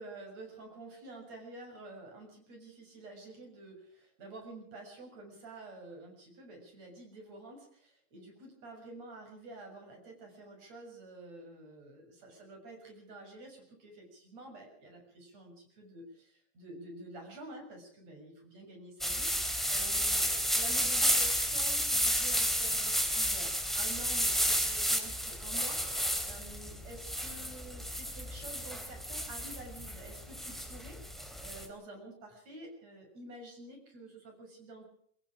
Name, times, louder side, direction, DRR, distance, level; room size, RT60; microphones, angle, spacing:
voice 1, 0.0-34.8, right 2 dB, 50° right, 2 dB, 8.1 m, -49 dB
sound 1, 19.0-31.7, equal, ahead, 3.2 m, -31 dB
24.0 x 22.0 x 5.0 m, 0.62 s
omnidirectional pair, 3.8 m